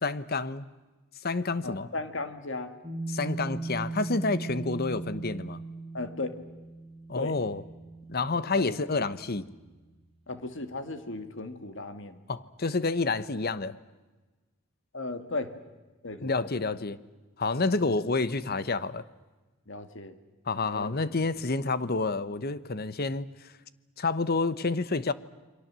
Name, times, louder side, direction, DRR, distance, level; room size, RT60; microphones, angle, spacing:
voice 1, 0.0-0.7 1.2-1.9 3.1-5.6 7.1-7.6 8.1-9.4 12.3-13.8 16.2-17.0 17.4-19.0 20.5-23.3 24.0-25.1, left 3 dB, 50° left, 15 dB, 1.0 m, -29 dB
voice 2, 1.6-2.8 5.9-6.4 7.2-7.4 8.5-8.8 10.3-12.2 14.9-15.5 16.0-16.5 17.8-17.9 19.7-20.2 20.6-21.0, left 2 dB, 65° left, 9 dB, 2.1 m, -36 dB
sound 1, 2.8-9.6, right 3 dB, 30° right, 3.9 m, -39 dB
29.0 x 23.0 x 7.6 m, 1.2 s
head